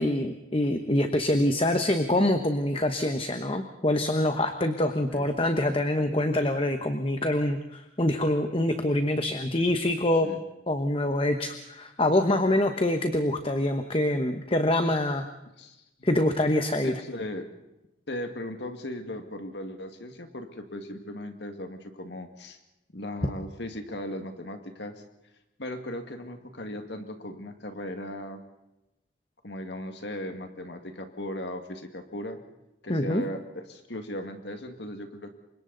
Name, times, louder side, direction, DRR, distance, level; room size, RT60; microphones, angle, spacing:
voice 1, 0.0-10.3 10.7-15.3 16.0-17.0 32.9-33.2, left 1 dB, 30° left, 7 dB, 1.2 m, -25 dB
voice 2, 15.6-16.1 16.8-17.5 18.1-22.6 22.9-25.0 25.6-28.4 29.4-32.4 32.8-35.3, left 1 dB, 65° left, 6 dB, 1.9 m, -37 dB
29.0 x 25.0 x 4.0 m, 0.93 s
head